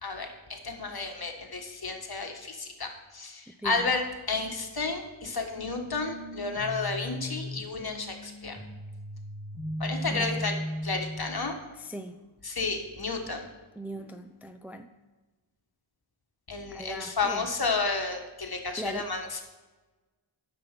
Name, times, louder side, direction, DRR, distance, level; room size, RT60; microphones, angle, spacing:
voice 1, 0.0-4.0 4.3-8.6 9.8-10.5 10.8-11.6 12.4-13.5 16.5-19.4, left 4 dB, 50° left, 3 dB, 1.6 m, -32 dB
voice 2, 3.5-3.9 10.1-10.4 11.8-12.2 13.8-14.9 16.7-17.5 18.8-19.1, equal, 5° right, 7 dB, 0.5 m, -39 dB
sound 1, 5.6-11.5, equal, 85° right, 3.9 m, -37 dB
9.6 x 6.9 x 5.9 m, 1.2 s
wide cardioid pair, 75°, 49 cm